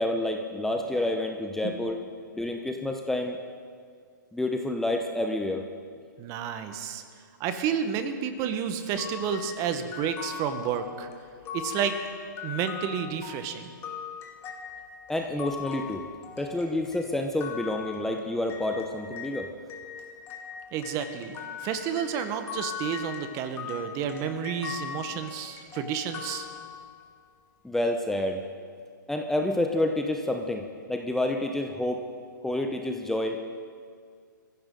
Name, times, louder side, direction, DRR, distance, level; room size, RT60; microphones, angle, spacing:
voice 1, 0.0-2.0 2.3-3.4 4.3-5.6 15.1-16.0 16.4-19.5 27.6-28.4 29.1-30.6 30.9-32.0 32.4-33.4, left 1 dB, 5° left, 3 dB, 0.9 m, -28 dB
voice 2, 1.6-1.9 6.2-7.0 7.4-11.1 11.5-12.0 12.4-13.7 20.7-26.5, right 8 dB, 30° right, 8 dB, 1.4 m, -31 dB
sound 1, 8.9-19.4 19.7-27.1, left 8 dB, 20° left, 2.2 m, -40 dB
23.5 x 15.5 x 4.0 m, 2.1 s
hypercardioid pair, 130°, 11 cm